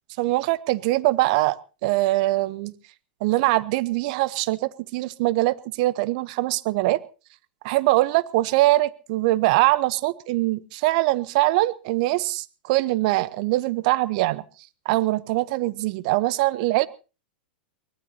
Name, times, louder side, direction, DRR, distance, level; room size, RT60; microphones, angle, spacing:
voice 1, 0.2-1.6 1.8-2.7 3.2-7.0 7.6-14.4 14.8-16.9, right 18 dB, 50° right, 18 dB, 0.9 m, -22 dB
23.5 x 18.5 x 2.8 m, 0.33 s
figure-of-eight pair, 95°, 5 cm